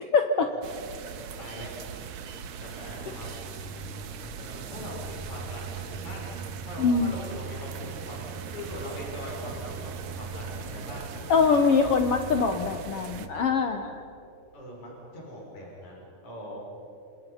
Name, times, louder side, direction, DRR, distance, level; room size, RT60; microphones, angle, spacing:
voice 1, 0.1-0.5 3.1-3.2 6.8-7.2 11.3-14.0, left 5 dB, 90° left, 6 dB, 1.3 m, -23 dB
sound 1, 0.6-13.3, right 7 dB, 65° right, 2.1 m, -41 dB
voice 2, 1.4-1.7 2.6-3.3 4.3-6.3 6.6-11.4 14.5-16.6, left 1 dB, 55° left, -3 dB, 7.2 m, -41 dB
sound 2, 2.7-14.1, right 4 dB, ahead, 5.0 m, -42 dB
28.0 x 27.0 x 5.8 m, 2.7 s
omnidirectional pair, 4.1 m